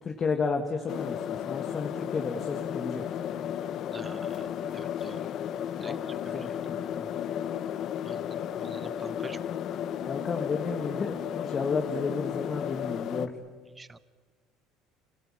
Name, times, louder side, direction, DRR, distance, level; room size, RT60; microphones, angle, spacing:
voice 1, 0.0-3.0 5.8-6.5 6.9-7.1 10.0-13.3, left 4 dB, 25° left, 4 dB, 1.5 m, -32 dB
sound 1, 0.9-13.3, left 9 dB, 40° left, 0.8 m, -34 dB
voice 2, 3.9-4.5 4.7-5.2 5.8-5.9 6.3-6.5 8.0-9.4 13.8-14.0, right 3 dB, 10° right, 16 dB, 0.7 m, -45 dB
29.0 x 18.0 x 8.8 m, 1.4 s
cardioid pair, 170°, 0 cm